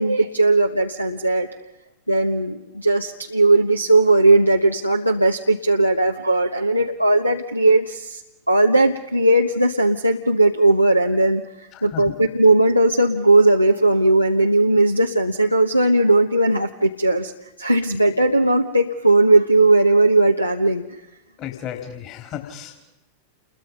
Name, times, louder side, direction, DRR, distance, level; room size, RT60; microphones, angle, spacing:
voice 1, 0.0-1.5 2.1-8.2 8.5-21.0, right 2 dB, 90° right, 1 dB, 1.1 m, -18 dB
voice 2, 11.7-12.1 21.4-22.8, left 10 dB, 35° left, 3 dB, 3.7 m, -34 dB
29.0 x 22.0 x 5.4 m, 0.96 s
figure-of-eight pair, 90°, 0 cm